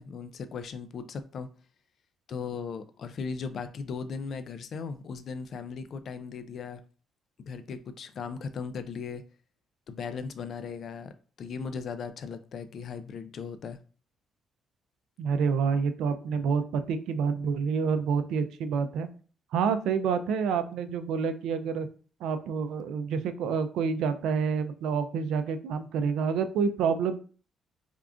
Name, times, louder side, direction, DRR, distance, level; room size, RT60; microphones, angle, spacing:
voice 1, 0.0-1.5 2.3-6.8 7.5-9.2 9.9-11.1 11.4-13.8, left 5 dB, 60° left, 0.4 m, -37 dB
voice 2, 15.2-19.1 19.5-21.9 22.2-27.2, right 6 dB, 85° right, 0.4 m, -28 dB
3.6 x 2.4 x 3.5 m
cardioid pair, 90°, 0 cm